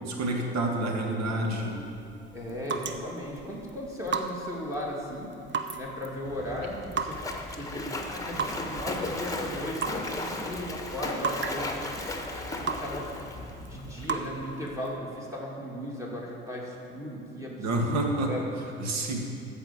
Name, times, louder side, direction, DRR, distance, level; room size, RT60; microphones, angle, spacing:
voice 1, 0.1-1.7 17.6-18.3 18.8-19.2, right 1 dB, 60° right, 1 dB, 1.9 m, -28 dB
sound 1, 1.4-15.0, right 5 dB, 40° right, 0.8 m, -37 dB
voice 2, 2.3-5.4 5.7-7.2 7.5-11.8 12.8-18.5, left 1 dB, 10° right, -4 dB, 2.7 m, -37 dB
Splash splatter, 6.2-14.1, left 2 dB, 10° left, 1.5 m, -36 dB
13.5 x 4.8 x 7.4 m, 2.6 s
hypercardioid pair, 60°, 30 cm